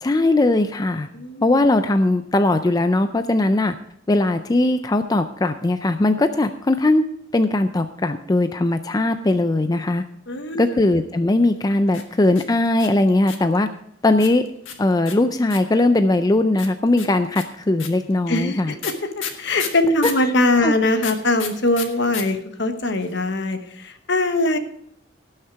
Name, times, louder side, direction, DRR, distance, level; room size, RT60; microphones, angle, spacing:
voice 1, 0.0-1.1 1.4-3.8 4.1-7.0 7.3-10.0 10.6-13.7 14.0-14.4 14.8-18.7 20.0-20.1 20.6-20.7, left 2 dB, 20° left, 9 dB, 0.4 m, -19 dB
voice 2, 1.1-1.4 10.3-10.6 18.3-24.6, left 2 dB, 60° left, 7 dB, 1.2 m, -22 dB
sound 1, 11.9-13.6 14.2-15.8 16.6-20.3 21.0-22.2 22.5-22.6 22.8-23.3, left 8 dB, 80° left, 1.6 m, -32 dB
18.0 x 6.5 x 4.6 m, 0.69 s
head